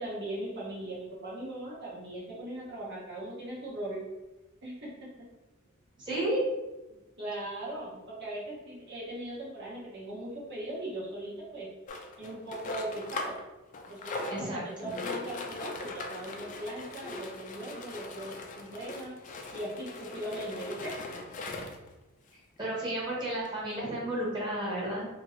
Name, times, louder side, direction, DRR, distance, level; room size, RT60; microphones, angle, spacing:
voice 1, 0.0-4.0 4.6-4.9 6.9-13.4 13.9-19.1 19.5-20.9, right 1 dB, 55° right, -5 dB, 0.8 m, -39 dB
voice 2, 6.0-6.4 14.3-14.9 22.6-25.1, right 1 dB, 20° right, -6 dB, 0.9 m, -32 dB
sound 1, 11.9-13.4 13.7-21.9 22.6-22.7 22.9-23.0 23.5-23.6, left 3 dB, 35° left, 0.3 m, -40 dB
2.8 x 2.5 x 3.0 m, 1.1 s
head